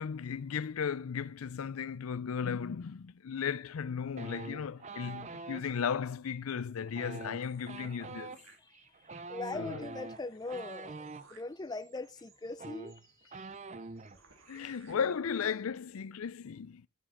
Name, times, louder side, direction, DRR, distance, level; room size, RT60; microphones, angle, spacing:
voice 1, 0.0-8.4 9.5-9.8 14.5-16.9, left 7 dB, 80° left, 0.5 m, -35 dB
sound 1, 4.2-5.6 6.9-11.2 12.2-12.3 12.5-14.2 14.5-14.7 15.0-15.5, right 3 dB, 35° right, 0.6 m, -45 dB
sound 2, 7.4-9.1 9.5-9.6 9.8-14.9, right 4 dB, 65° right, 2.5 m, -63 dB
voice 2, 9.3-13.0 13.3-13.4, left 3 dB, 20° left, 0.4 m, -40 dB
11.0 x 7.2 x 5.7 m
head